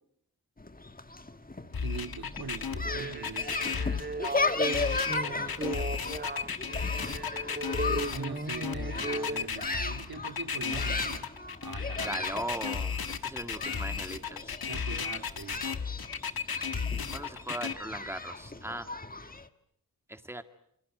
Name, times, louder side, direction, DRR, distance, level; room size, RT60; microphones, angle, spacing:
sound 1, 0.6-19.5, left 3 dB, 25° left, 1.6 m, -37 dB
sound 2, 1.7-17.7, left 6 dB, 80° left, 1.6 m, -34 dB
voice 1, 1.8-4.1 8.1-11.3 11.6-12.4 14.7-15.6, right 5 dB, 85° right, 7 dB, 2.5 m, -42 dB
sound 3, 2.8-9.5, right 2 dB, 25° right, 1.8 m, -36 dB
voice 2, 5.0-5.9 12.0-14.5 17.1-18.9 20.1-20.4, right 1 dB, 5° right, 8 dB, 2.1 m, -39 dB
28.0 x 25.0 x 7.9 m, 0.74 s
wide cardioid pair, 65°, 36 cm